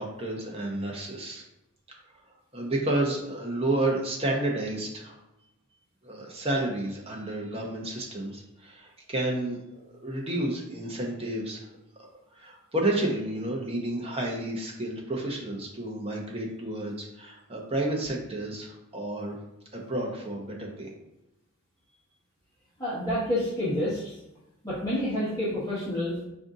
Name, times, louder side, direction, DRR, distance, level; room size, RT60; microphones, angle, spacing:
voice 1, 0.0-1.4 2.5-5.2 6.0-11.6 12.0-12.1 12.3-19.4 19.7-20.9, right 1 dB, 25° right, -1 dB, 0.7 m, -31 dB
voice 2, 22.8-24.1 24.6-26.2, left 1 dB, 15° left, -11 dB, 1.2 m, -28 dB
4.9 x 2.7 x 3.7 m, 0.89 s
head